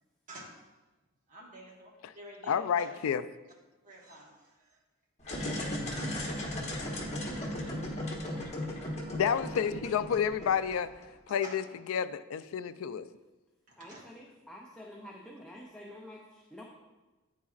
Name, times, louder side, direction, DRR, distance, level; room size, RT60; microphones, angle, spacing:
voice 1, 1.3-1.9 2.1-3.0 3.8-4.5 5.4-6.8 8.7-9.4 11.3-11.6 13.7-14.0, right 1 dB, 40° right, -3 dB, 1.4 m, -50 dB
voice 2, 2.5-3.2 9.1-10.9 11.3-13.1, left 8 dB, 85° left, 13 dB, 0.3 m, -30 dB
sound 1, 5.2-11.0, left 1 dB, 35° left, 1.2 m, -36 dB
voice 3, 13.8-16.6, left 1 dB, 5° left, -2 dB, 0.5 m, -48 dB
10.0 x 4.1 x 2.4 m, 1.1 s
head